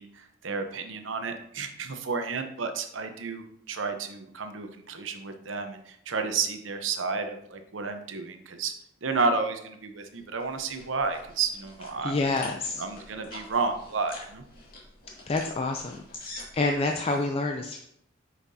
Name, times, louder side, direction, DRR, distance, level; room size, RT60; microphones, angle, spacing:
voice 1, 0.0-8.7 9.0-12.2 12.8-14.4, right 4 dB, 90° right, 6 dB, 0.9 m, -31 dB
sound 1, 10.1-17.2, left 2 dB, 50° left, 2.1 m, -47 dB
voice 2, 12.0-12.8 15.3-16.3 16.5-17.8, left 3 dB, 30° left, 3 dB, 0.4 m, -28 dB
8.3 x 5.8 x 2.7 m, 0.72 s
head